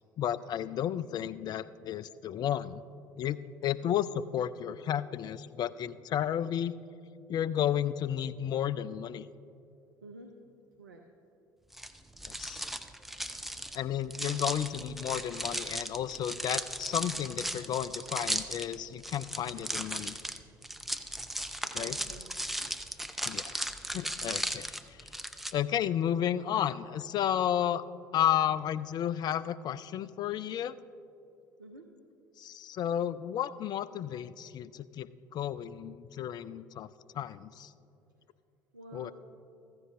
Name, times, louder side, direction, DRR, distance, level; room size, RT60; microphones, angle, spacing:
voice 1, 0.2-2.8 3.2-6.7 7.3-9.3 12.2-12.6 13.7-20.2 21.7-22.0 23.2-23.6 23.9-25.1 25.5-27.8 28.1-30.8 32.4-35.1 35.3-36.9 37.1-37.7 38.9-39.1, left 10 dB, 40° left, 16 dB, 0.4 m, -32 dB
sound 1, 11.7-25.5, right 1 dB, ahead, 0.6 m, -36 dB
voice 2, 21.7-22.3 31.6-31.9 38.7-39.1, right 2 dB, 85° right, 3 dB, 0.6 m, -49 dB
15.0 x 14.0 x 2.6 m, 2.8 s
figure-of-eight pair, 60°, 11 cm